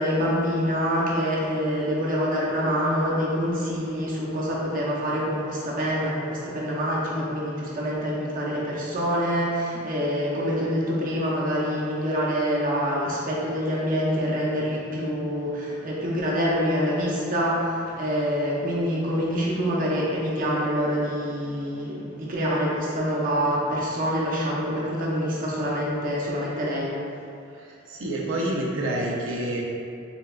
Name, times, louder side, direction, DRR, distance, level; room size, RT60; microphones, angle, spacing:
voice 1, 0.0-26.9, equal, 45° right, -5 dB, 0.7 m, -26 dB
voice 2, 27.5-29.6, right 1 dB, 80° right, -3 dB, 0.6 m, -28 dB
5.2 x 2.3 x 2.3 m, 2.6 s
head